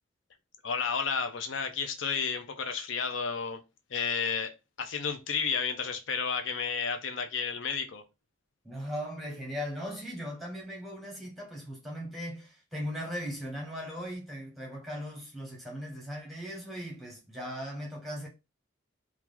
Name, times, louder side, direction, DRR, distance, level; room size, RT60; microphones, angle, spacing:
voice 1, 0.6-3.6 3.9-8.0, left 6 dB, 75° left, 0.5 m, -32 dB
voice 2, 8.6-18.3, equal, ahead, 1.1 m, -38 dB
3.0 x 2.3 x 3.7 m
head